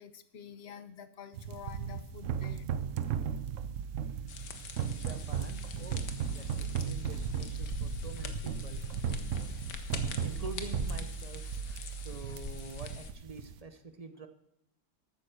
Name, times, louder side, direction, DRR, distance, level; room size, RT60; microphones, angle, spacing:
voice 1, 0.0-2.7, left 7 dB, 45° left, 13 dB, 0.9 m, -48 dB
sound 1, 1.3-13.6, right 7 dB, 90° right, 1.4 m, -43 dB
sound 2, 2.2-12.4, right 7 dB, 60° right, 0.9 m, -36 dB
sound 3, 4.3-13.1, left 5 dB, 85° left, 1.8 m, -43 dB
voice 2, 4.6-6.0 6.3-8.8 10.2-14.3, right 3 dB, 35° right, 8 dB, 0.6 m, -46 dB
14.0 x 9.1 x 6.7 m, 0.77 s
omnidirectional pair, 1.8 m